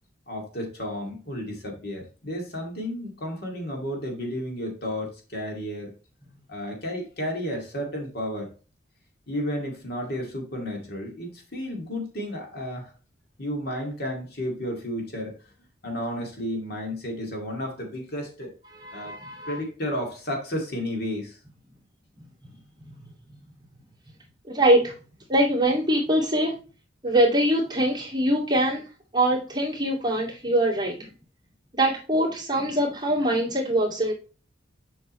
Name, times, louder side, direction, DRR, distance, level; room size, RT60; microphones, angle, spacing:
voice 1, 0.3-5.9 6.5-8.5 9.3-12.9 13.4-15.4 15.8-18.5 18.9-19.2 19.5-21.4, equal, 55° left, 1 dB, 2.3 m, -32 dB
voice 2, 18.8-19.6 24.5-24.9 25.3-26.5 27.0-28.8 29.1-31.1 31.7-34.1, right 1 dB, 20° right, -3 dB, 2.2 m, -23 dB
7.5 x 5.6 x 3.1 m, 0.34 s
head